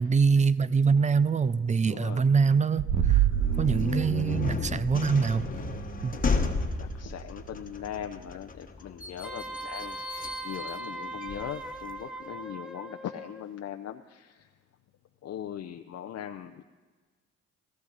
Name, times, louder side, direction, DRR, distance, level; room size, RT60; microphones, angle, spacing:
voice 1, 0.0-3.2 3.6-5.5 6.0-6.2, right 5 dB, 25° right, 17 dB, 0.4 m, -24 dB
voice 2, 1.9-2.2 6.8-14.5 15.2-16.6, left 10 dB, 60° left, 5 dB, 0.6 m, -40 dB
sound 1, 2.8-8.3, right 10 dB, 75° right, 1.3 m, -30 dB
sound 2, 3.3-12.0, left 4 dB, 30° left, 1.2 m, -33 dB
Wind instrument woodwind instrument, 9.2-13.4, right 2 dB, 5° right, 0.9 m, -40 dB
18.0 x 13.5 x 4.0 m, 1.4 s
cardioid pair, 90°, 30 cm